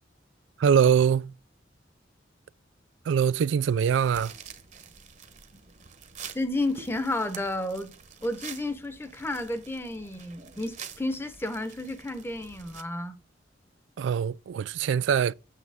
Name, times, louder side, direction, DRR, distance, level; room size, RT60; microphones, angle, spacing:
voice 1, 0.6-1.3 3.1-4.3 14.0-15.3, right 7 dB, 75° right, 0.3 m, -23 dB
sound 1, 3.6-12.8, right 7 dB, 40° right, 1.0 m, -47 dB
voice 2, 6.3-7.9 8.2-13.1, left 1 dB, 15° left, 0.9 m, -31 dB
8.5 x 7.7 x 3.5 m
head